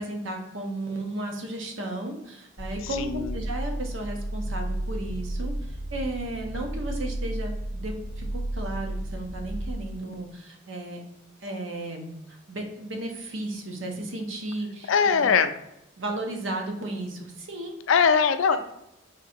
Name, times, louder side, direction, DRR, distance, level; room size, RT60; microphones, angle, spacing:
voice 1, 0.0-11.0 11.4-14.9 16.0-17.8, right 1 dB, 70° right, 2 dB, 0.8 m, -34 dB
sound 1, 2.6-9.7, right 1 dB, 5° left, 0.6 m, -33 dB
voice 2, 2.8-3.4 14.9-15.5 17.9-18.6, left 6 dB, 70° left, 10 dB, 0.4 m, -21 dB
3.7 x 2.7 x 4.2 m, 0.83 s
head